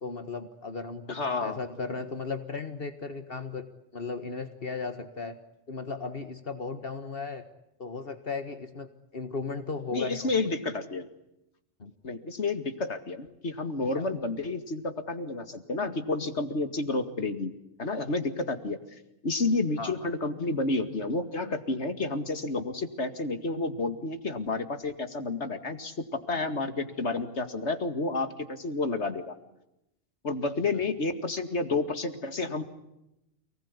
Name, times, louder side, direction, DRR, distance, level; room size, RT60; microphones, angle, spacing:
voice 1, 0.0-3.7 3.9-5.4 5.7-7.4 7.8-10.3 11.8-11.9 14.0-14.1 19.8-20.1, left 4 dB, 55° left, 9 dB, 1.9 m, -36 dB
voice 2, 1.1-1.6 9.9-11.1 12.0-17.5 17.8-18.8 19.2-25.9 26.3-29.3 30.2-32.6, left 3 dB, 90° left, 9 dB, 2.5 m, -30 dB
29.0 x 20.0 x 9.8 m, 0.87 s
omnidirectional pair, 1.1 m